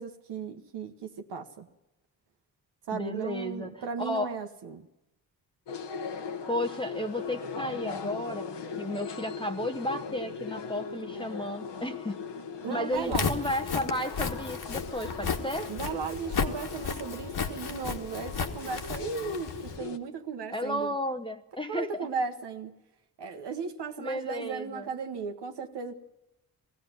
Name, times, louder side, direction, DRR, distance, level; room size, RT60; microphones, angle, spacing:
voice 1, 0.0-1.7 2.9-4.9 12.6-13.3 15.7-20.9 21.7-22.7 23.2-26.0, right 5 dB, 75° right, 4 dB, 1.2 m, -36 dB
voice 2, 2.9-4.4 6.5-12.2 12.7-15.7 20.5-22.1 24.0-24.9, left 1 dB, 10° left, 7 dB, 0.9 m, -33 dB
sound 1, 5.7-20.0, left 5 dB, 75° left, 1.4 m, -39 dB
Walk footsteps, 13.0-19.8, left 5 dB, 60° left, 1.7 m, -34 dB
19.5 x 15.5 x 9.4 m, 0.94 s
cardioid pair, 65°, 41 cm